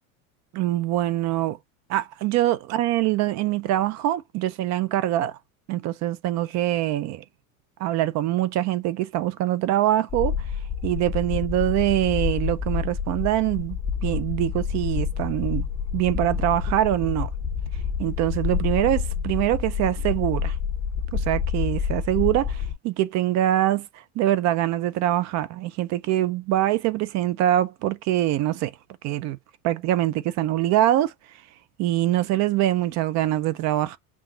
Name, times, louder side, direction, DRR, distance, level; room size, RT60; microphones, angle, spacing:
voice 1, 0.5-1.6 1.9-5.4 5.7-7.2 7.8-10.3 10.8-15.7 15.9-17.3 18.0-20.6 21.1-23.9 24.2-28.7 29.0-29.4 29.6-31.1 31.8-34.0, right 13 dB, 45° right, 0.5 m, -24 dB
sound 1, 10.1-22.7, left 7 dB, 10° left, 1.7 m, -28 dB
6.0 x 2.4 x 3.7 m
cardioid pair, 155°, 41 cm